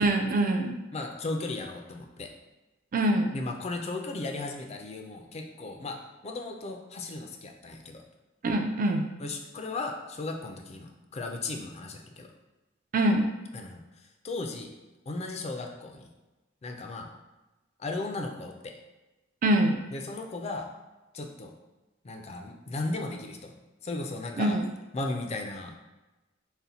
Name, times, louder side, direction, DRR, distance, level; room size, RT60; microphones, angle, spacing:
voice 1, 0.0-0.7 2.9-3.4 8.4-9.1 12.9-13.3 19.4-19.8 24.4-24.7, right 1 dB, 45° right, 4 dB, 0.4 m, -24 dB
voice 2, 0.9-2.3 3.3-6.0 6.2-8.0 9.2-12.3 13.5-13.8 14.2-14.7 15.1-16.1 16.6-17.1 17.8-18.7 19.9-20.7 21.1-21.5 22.0-23.5 23.8-24.6 24.9-25.8, left 2 dB, 35° left, 3 dB, 0.4 m, -36 dB
4.0 x 2.2 x 4.0 m, 1.1 s
head